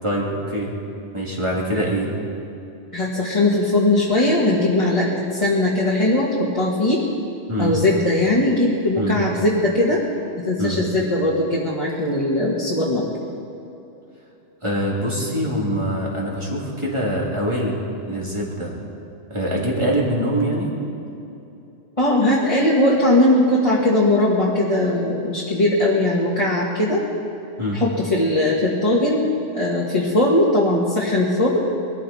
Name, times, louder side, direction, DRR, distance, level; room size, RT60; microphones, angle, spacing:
voice 1, 0.0-0.7 1.1-2.1 7.5-7.8 9.0-9.1 10.6-10.8 14.6-17.8 18.1-18.7 19.3-20.7 27.6-27.8, equal, 25° right, -4 dB, 2.9 m, -24 dB
voice 2, 2.9-7.0 7.6-10.0 10.5-13.0 22.0-27.0 27.7-31.6, left 1 dB, 30° left, -6 dB, 1.8 m, -19 dB
22.0 x 14.0 x 4.3 m, 2.8 s
omnidirectional pair, 1.2 m